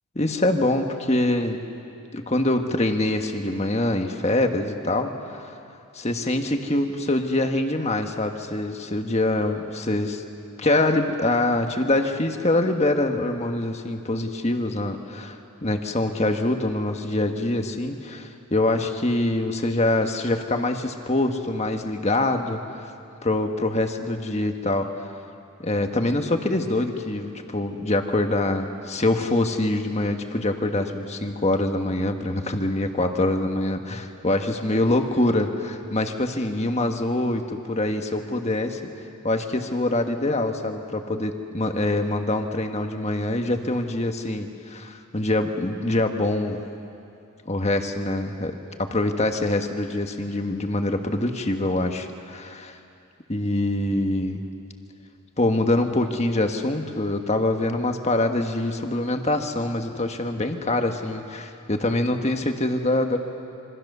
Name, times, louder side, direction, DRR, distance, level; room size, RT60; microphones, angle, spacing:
voice 1, 0.1-1.7 2.1-5.4 5.9-10.2 10.6-22.9 23.2-24.9 25.6-38.8 39.2-46.6 47.5-52.8 53.3-54.4 55.4-63.2, left 2 dB, 30° left, 5 dB, 1.5 m, -24 dB
27.0 x 25.0 x 6.8 m, 2.6 s
head